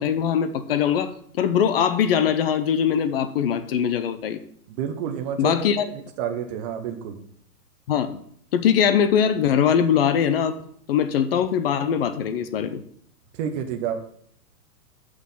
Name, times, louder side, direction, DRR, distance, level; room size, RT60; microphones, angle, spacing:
voice 1, 0.0-4.4 5.4-5.8 7.9-8.2 8.5-10.6 10.9-12.8, left 8 dB, 40° left, 11 dB, 0.7 m, -21 dB
voice 2, 4.7-7.2 13.3-14.0, right 8 dB, 25° right, 5 dB, 0.8 m, -30 dB
6.4 x 6.2 x 7.1 m, 0.63 s
hypercardioid pair, 150°, 48 cm